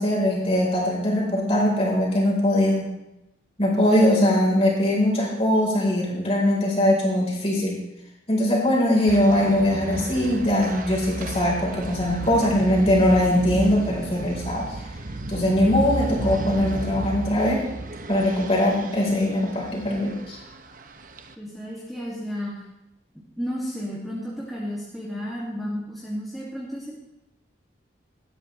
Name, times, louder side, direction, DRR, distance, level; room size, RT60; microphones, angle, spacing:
voice 1, 0.0-2.9 3.6-7.8 8.3-14.7 15.3-17.6 18.1-20.4, left 1 dB, 30° left, -3 dB, 4.1 m, -21 dB
sound 1, 9.1-21.3, right 2 dB, 45° right, 0.9 m, -33 dB
voice 2, 21.4-22.5 23.4-27.0, equal, ahead, -7 dB, 2.2 m, -32 dB
18.0 x 12.5 x 3.3 m, 0.91 s
head